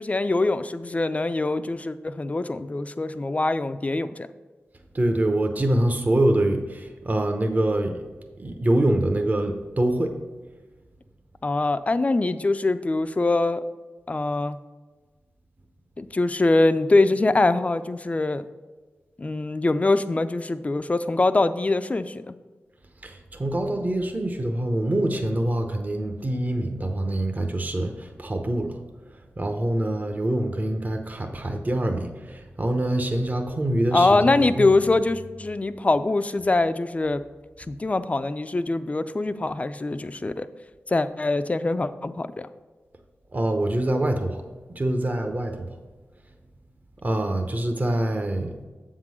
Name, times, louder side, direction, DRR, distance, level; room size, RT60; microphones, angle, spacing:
voice 1, 0.0-4.3 11.4-13.6 14.1-14.6 16.0-18.5 19.2-22.3 33.9-37.2 37.7-40.5 40.9-42.5, left 2 dB, 30° left, 11 dB, 0.4 m, -23 dB
voice 2, 4.9-8.0 8.4-10.2 23.0-28.8 29.0-34.7 43.3-45.7 47.0-48.5, right 1 dB, 35° right, 4 dB, 0.8 m, -25 dB
7.4 x 3.7 x 6.2 m, 1.3 s
cardioid pair, 50°, 5 cm